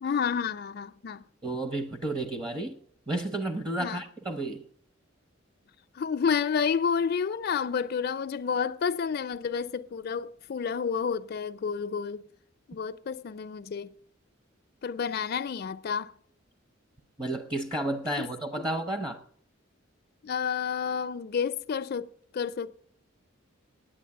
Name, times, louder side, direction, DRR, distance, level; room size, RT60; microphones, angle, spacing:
voice 1, 0.0-1.2 3.8-4.0 6.0-12.2 12.7-13.9 14.8-16.1 18.1-18.3 20.2-22.8, left 6 dB, 50° left, 0.4 m, -30 dB
voice 2, 1.4-2.8 3.1-4.6 17.2-19.2, right 1 dB, 20° right, 0.7 m, -32 dB
10.0 x 8.3 x 8.5 m
head